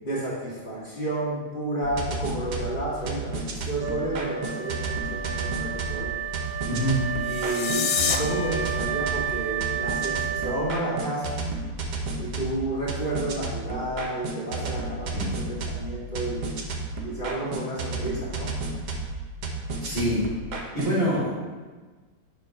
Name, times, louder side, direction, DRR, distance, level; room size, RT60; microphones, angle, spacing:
voice 1, 0.0-6.1 7.2-11.5 12.2-16.4 17.0-18.5, right 1 dB, 35° left, -8 dB, 2.3 m, -31 dB
sound 1, 1.8-21.0, right 3 dB, 65° right, 1.3 m, -32 dB
Wind instrument woodwind instrument, 3.8-11.4, right 8 dB, 80° right, 1.4 m, -32 dB
voice 2, 6.7-7.0 15.1-15.3 19.8-20.2 20.7-21.6, equal, 40° right, -8 dB, 1.3 m, -25 dB
sound 2, 7.2-8.2, left 7 dB, 80° left, 1.3 m, -26 dB
6.9 x 3.2 x 4.9 m, 1.4 s
omnidirectional pair, 2.0 m